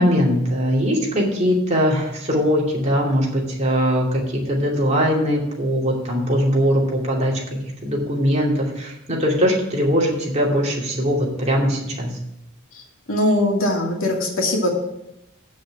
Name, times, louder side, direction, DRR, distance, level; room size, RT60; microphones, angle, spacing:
voice 1, 0.0-7.4 7.8-12.2, equal, 35° right, -2 dB, 2.6 m, -21 dB
voice 2, 13.1-14.7, left 1 dB, 80° left, 1 dB, 2.3 m, -20 dB
8.7 x 6.3 x 7.4 m, 0.84 s
head